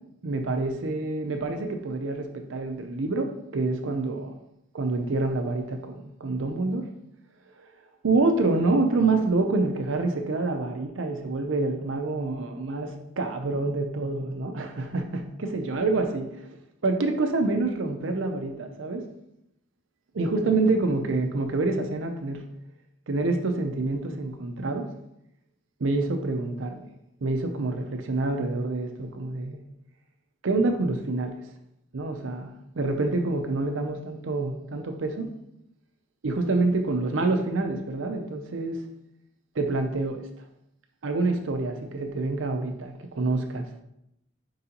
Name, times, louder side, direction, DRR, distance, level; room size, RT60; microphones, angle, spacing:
voice 1, 0.2-4.3 4.7-6.9 8.0-16.2 16.8-19.1 20.1-22.5 23.1-24.9 25.8-26.9 27.2-29.6 30.4-31.4 31.9-35.3 36.2-38.8 39.6-40.2 41.0-43.7, right 3 dB, 90° right, 5 dB, 0.6 m, -27 dB
4.7 x 3.9 x 2.9 m, 0.80 s
head